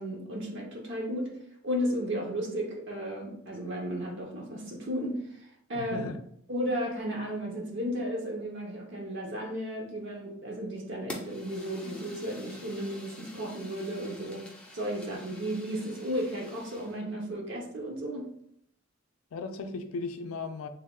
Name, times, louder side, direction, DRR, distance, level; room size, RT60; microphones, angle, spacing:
voice 1, 0.0-1.4 1.6-6.1 6.5-14.5 14.7-18.3, equal, 60° right, 0.7 m, -34 dB
voice 2, 5.7-6.2 19.3-20.7, left 4 dB, 80° left, 0.4 m, -36 dB
Fire, 11.1-17.0, left 1 dB, 5° left, 0.5 m, -47 dB
3.4 x 2.2 x 3.6 m
head